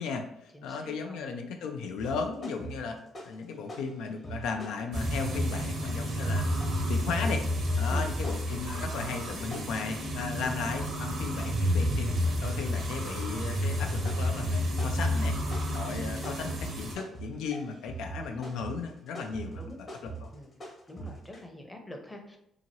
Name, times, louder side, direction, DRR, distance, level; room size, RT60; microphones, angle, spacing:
voice 1, 0.0-3.0 3.2-7.4 7.8-12.1 12.4-15.4 15.7-20.3, left 5 dB, 90° left, 4 dB, 0.3 m, -36 dB
voice 2, 0.5-1.3 7.9-8.1 18.2-18.5 19.6-19.8 20.3-20.5 20.9-22.4, left 1 dB, 10° left, 3 dB, 0.6 m, -45 dB
sound 1, 2.0-3.4 3.7-21.4, right 3 dB, 40° left, 0.8 m, -42 dB
sound 2, 4.9-16.9, left 1 dB, 70° right, 0.9 m, -30 dB
2.8 x 2.6 x 2.8 m, 0.79 s
cardioid pair, 90°, 0 cm